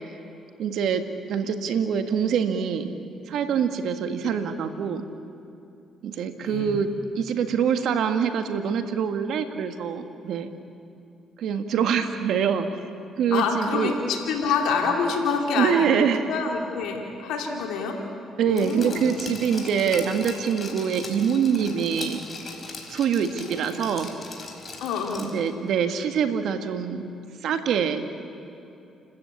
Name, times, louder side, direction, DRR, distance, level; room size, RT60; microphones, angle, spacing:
voice 1, 0.6-2.9 3.3-5.0 6.0-10.5 11.4-12.7 13.2-13.9 15.5-16.3 18.4-22.2 22.9-24.1 25.2-28.0, right 7 dB, 75° right, 8 dB, 1.7 m, -25 dB
voice 2, 6.4-6.8 13.3-18.0 18.4-19.0 24.8-25.3, left 5 dB, 80° left, 1 dB, 2.7 m, -27 dB
Glass, 18.6-25.5 25.8-25.9, left 3 dB, 40° left, 4.4 m, -40 dB
30.0 x 13.5 x 8.6 m, 2.8 s
supercardioid pair, 65°, 0 cm